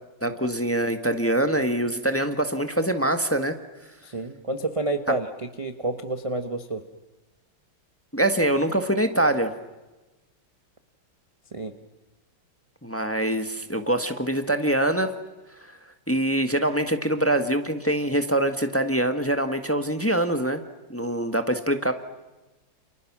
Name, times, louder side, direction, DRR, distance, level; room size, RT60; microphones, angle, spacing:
voice 1, 0.2-3.5 8.1-9.5 12.8-15.1 16.1-20.6 20.9-21.9, right 1 dB, 10° left, 7 dB, 1.4 m, -24 dB
voice 2, 4.0-6.8 11.5-11.7, right 2 dB, 20° right, 6 dB, 1.1 m, -29 dB
30.0 x 29.0 x 6.2 m, 1.1 s
omnidirectional pair, 2.1 m